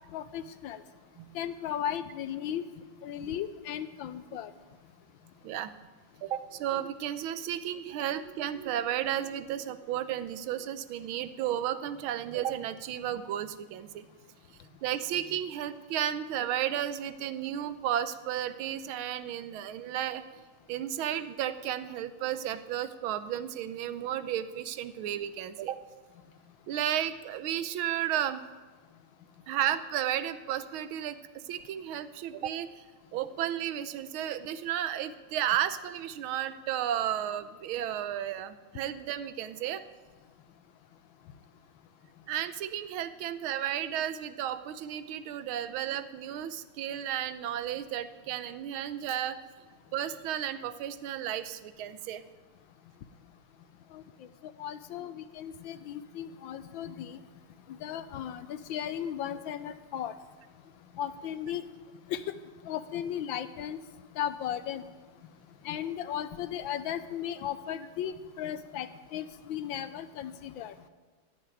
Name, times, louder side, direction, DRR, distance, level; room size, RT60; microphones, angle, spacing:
voice 1, 0.1-0.8 1.3-2.6 3.0-4.5 53.9-54.0 54.4-57.2 57.8-60.1 61.0-61.6 62.1-62.2 62.6-63.8 64.2-64.8 65.6-70.7, left 10 dB, 75° left, 13 dB, 1.3 m, -36 dB
voice 2, 6.2-14.1 14.8-20.2 20.7-25.8 26.7-28.5 29.5-32.8 33.1-39.8 42.3-49.4 49.9-52.2, right 11 dB, 75° right, 13 dB, 1.4 m, -33 dB
14.0 x 6.8 x 9.8 m, 1.3 s
omnidirectional pair, 2.4 m